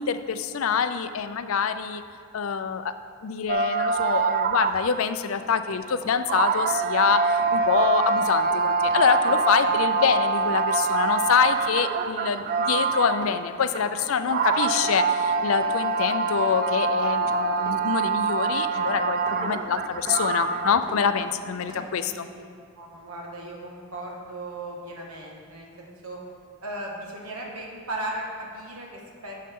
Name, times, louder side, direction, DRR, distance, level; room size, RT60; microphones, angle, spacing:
voice 1, 0.0-2.0 2.3-2.9 3.2-22.2, left 6 dB, 70° left, 10 dB, 0.4 m, -25 dB
sound 1, 3.5-5.1 5.7-5.8 6.3-13.4 13.8-20.8, right 4 dB, 40° right, 0.3 m, -25 dB
Run, 4.9-21.9 22.2-22.4, equal, 20° right, 1.1 m, -45 dB
voice 2, 21.7-22.4 22.7-26.2 26.6-29.3, right 1 dB, 80° right, -2 dB, 1.5 m, -37 dB
11.0 x 6.5 x 3.7 m, 2.2 s
head